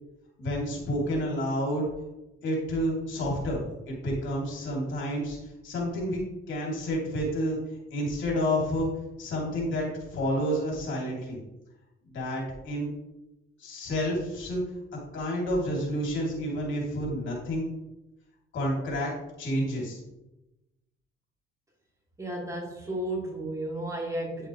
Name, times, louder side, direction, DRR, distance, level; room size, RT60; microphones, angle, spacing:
voice 1, 0.4-1.8 2.4-5.4 5.6-6.2 6.5-7.6 7.9-8.9 9.2-11.4 12.1-12.9 13.6-14.6 15.1-17.7 18.5-19.1 19.4-20.0, equal, 75° left, -3 dB, 3.5 m, -29 dB
voice 2, 22.2-24.5, right 1 dB, 15° right, -3 dB, 3.2 m, -33 dB
9.9 x 7.1 x 3.4 m, 0.95 s
cardioid pair, 90°, 20 cm